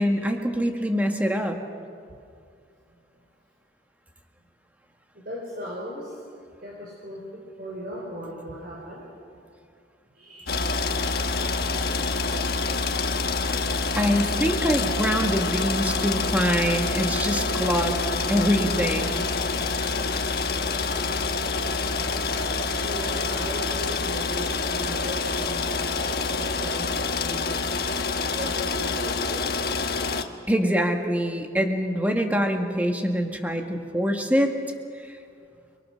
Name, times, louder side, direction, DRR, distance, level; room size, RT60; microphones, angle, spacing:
voice 1, 0.0-1.6 14.0-18.0 18.3-19.2 30.5-34.5, equal, 10° right, 3 dB, 1.8 m, -24 dB
voice 2, 5.2-6.2 6.6-7.2 7.6-9.0 10.1-10.6 11.8-12.1 12.4-12.5 12.8-14.7 22.7-27.6 28.3-29.5, equal, 55° right, -3 dB, 4.5 m, -38 dB
sound 1, 10.5-30.2, left 4 dB, 55° left, 1.3 m, -27 dB
29.5 x 23.0 x 6.5 m, 2.3 s
head